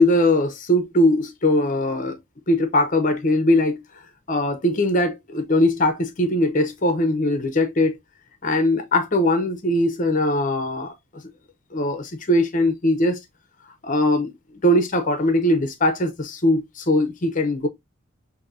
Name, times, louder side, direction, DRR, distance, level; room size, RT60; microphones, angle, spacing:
voice 1, 0.0-2.2 2.5-3.8 4.3-7.9 8.4-10.9 11.7-13.2 13.8-14.3 14.6-17.7, left 1 dB, 35° left, 0.7 m, -20 dB
6.2 x 2.7 x 2.5 m
head